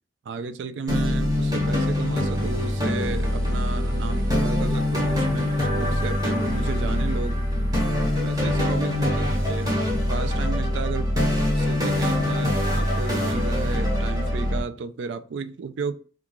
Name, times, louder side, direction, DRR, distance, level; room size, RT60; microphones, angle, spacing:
voice 1, 0.3-7.4 8.2-9.8 10.1-11.2 11.6-15.9, right 4 dB, 80° right, 12 dB, 0.4 m, -33 dB
sound 1, 0.9-14.6, left 1 dB, 20° right, 1.1 m, -24 dB
3.6 x 2.3 x 3.0 m, 0.39 s
head